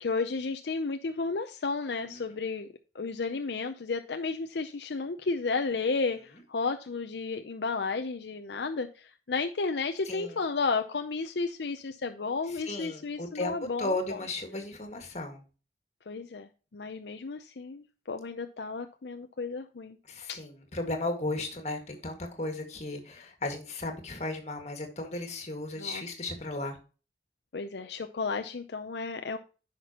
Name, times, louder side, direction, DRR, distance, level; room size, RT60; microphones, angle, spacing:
voice 1, 0.0-2.7 2.9-14.2 16.1-20.0 20.3-20.4 25.8-26.0 27.5-29.4, left 4 dB, 70° left, 7 dB, 0.6 m, -33 dB
voice 2, 10.1-10.4 12.5-15.4 20.1-26.8, left 2 dB, 40° left, 4 dB, 1.9 m, -35 dB
10.0 x 5.9 x 2.9 m, 0.34 s
head